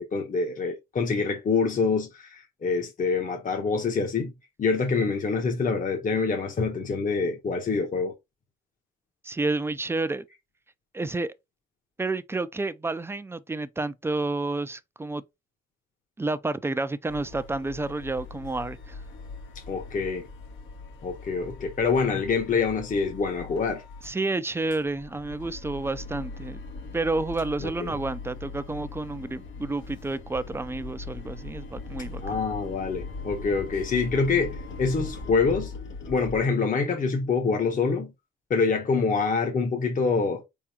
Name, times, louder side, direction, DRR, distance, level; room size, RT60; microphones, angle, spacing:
voice 1, 0.0-4.3 4.6-8.1 19.7-20.3 21.0-23.8 27.6-28.0 32.2-35.7 36.1-38.1 38.5-40.4, left 4 dB, 40° left, 1.0 m, -26 dB
voice 2, 9.2-10.2 10.9-11.3 12.0-15.2 16.2-19.0 24.0-26.6 26.9-32.4, right 2 dB, 10° right, 0.4 m, -30 dB
sound 1, 17.1-24.2 24.5-36.5, left 4 dB, 80° left, 1.2 m, -40 dB
4.2 x 3.6 x 2.8 m
cardioid pair, 90°, 20 cm